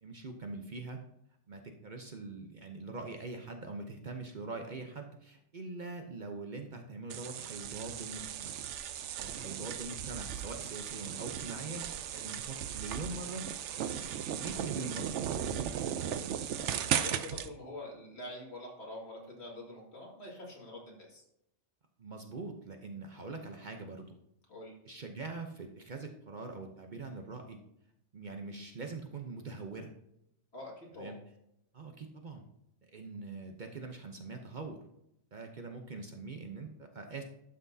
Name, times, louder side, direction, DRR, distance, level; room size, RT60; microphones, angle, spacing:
voice 1, 0.0-1.0 1.5-8.6 9.2-13.5 13.8-14.0 14.3-16.1 22.0-24.2 24.8-27.6 28.1-29.9 30.9-31.2 31.7-32.5 32.8-34.8 35.3-37.2, right 3 dB, 45° right, 4 dB, 0.8 m, -43 dB
sound 1, 7.1-17.5, right 9 dB, 75° right, 0.9 m, -37 dB
voice 2, 16.5-21.2 24.5-24.7 30.5-31.1, left 1 dB, 60° left, -2 dB, 2.4 m, -46 dB
12.0 x 6.0 x 2.7 m, 0.79 s
omnidirectional pair, 1.2 m